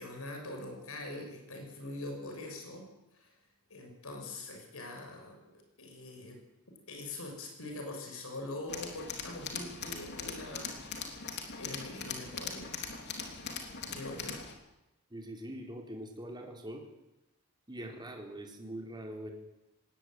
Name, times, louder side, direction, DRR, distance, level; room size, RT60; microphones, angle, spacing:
voice 1, 0.0-2.8 3.1-3.3 3.7-6.4 6.9-10.8 11.4-12.7 13.9-14.4, left 2 dB, 70° left, 3 dB, 6.6 m, -43 dB
Tools, 8.7-14.5, left 5 dB, 50° left, 3.4 m, -41 dB
voice 2, 15.1-16.8 17.7-19.3, right 1 dB, 20° right, 1 dB, 3.9 m, -43 dB
19.5 x 18.0 x 9.1 m, 0.96 s
head